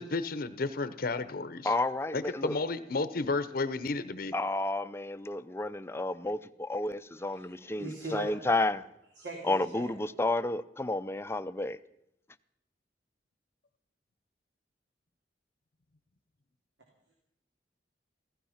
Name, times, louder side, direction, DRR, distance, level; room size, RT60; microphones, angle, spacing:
voice 1, 0.0-1.7 2.1-4.3, left 3 dB, 55° left, 13 dB, 0.7 m, -32 dB
voice 2, 1.6-2.6 4.3-8.8 9.4-11.8, left 2 dB, 15° left, 13 dB, 0.5 m, -31 dB
voice 3, 7.6-8.3 9.2-9.9, right 2 dB, 85° right, -1 dB, 3.3 m, -40 dB
16.0 x 15.0 x 5.7 m, 0.81 s
head